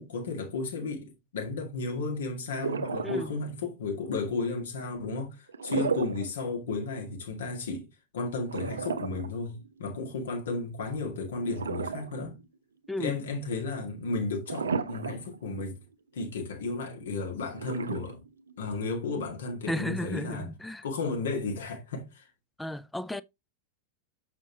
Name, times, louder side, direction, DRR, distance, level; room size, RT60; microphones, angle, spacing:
voice 1, 0.0-7.9 8.1-12.4 13.0-15.8 16.1-18.2 18.6-20.5 20.8-22.3, left 3 dB, 60° left, 2.0 m, -33 dB
sound 1, 2.6-3.6 5.5-6.3 6.7-6.8 8.5-10.0 11.5-12.4 12.8-12.9 14.5-15.4 15.7-15.8 17.5-18.6, right 5 dB, 70° right, 0.6 m, -33 dB
voice 2, 3.0-3.4 12.9-13.2 19.7-20.8 22.6-23.2, left 1 dB, 5° left, 0.4 m, -34 dB
6.8 x 5.7 x 2.9 m
figure-of-eight pair, 90°, 0 cm